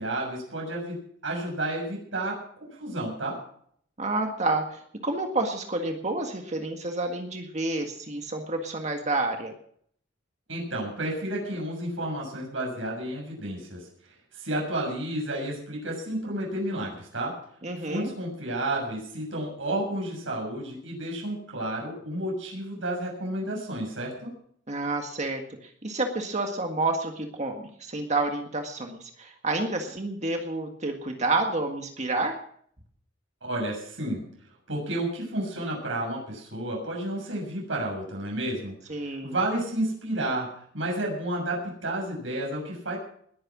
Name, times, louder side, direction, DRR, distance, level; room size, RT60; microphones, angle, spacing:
voice 1, 0.0-3.4 10.5-13.9 14.3-17.4 17.9-24.3 33.4-34.3 34.7-40.5 40.7-43.0, right 1 dB, 90° right, -1 dB, 6.7 m, -31 dB
voice 2, 4.0-9.5 17.6-18.1 24.7-32.4 38.9-39.3, right 2 dB, 40° right, 4 dB, 1.8 m, -29 dB
20.5 x 9.5 x 6.1 m, 0.63 s
head